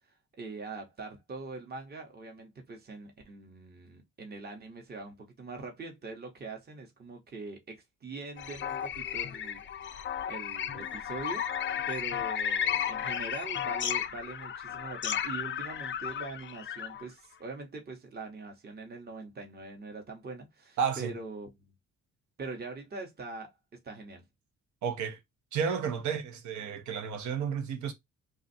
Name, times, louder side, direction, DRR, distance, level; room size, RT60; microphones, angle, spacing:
voice 1, 0.4-9.9 10.2-11.5 11.9-21.7 22.4-23.5 23.8-24.2, right 3 dB, 30° right, 1.0 m, -43 dB
sound 1, 8.4-17.0, left 9 dB, 40° left, 0.4 m, -34 dB
voice 2, 20.8-21.1 24.8-25.2 25.5-27.9, right 7 dB, 70° right, 1.0 m, -32 dB
2.6 x 2.4 x 4.0 m
cardioid pair, 90°, 30 cm